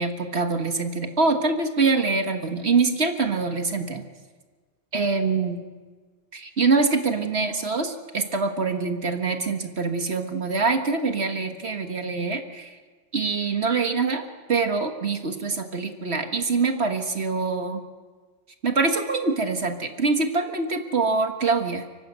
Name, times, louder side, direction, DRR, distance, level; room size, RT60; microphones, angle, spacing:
voice 1, 0.0-4.0 4.9-5.6 6.3-12.8 13.1-14.2 14.5-17.8 18.6-21.9, right 4 dB, 60° right, 5 dB, 1.8 m, -24 dB
29.5 x 12.5 x 8.1 m, 1.4 s
omnidirectional pair, 1.3 m